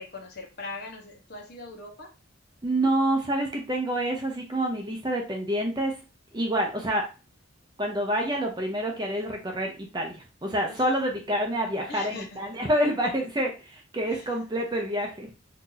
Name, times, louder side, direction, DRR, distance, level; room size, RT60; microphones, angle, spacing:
voice 1, 0.0-2.1 10.7-10.8 11.9-12.6 14.0-14.3, left 3 dB, 50° left, 1 dB, 0.8 m, -41 dB
voice 2, 2.6-5.9 6.3-7.1 7.8-15.3, right 1 dB, 20° right, 1 dB, 0.6 m, -27 dB
2.8 x 2.6 x 3.8 m, 0.32 s
head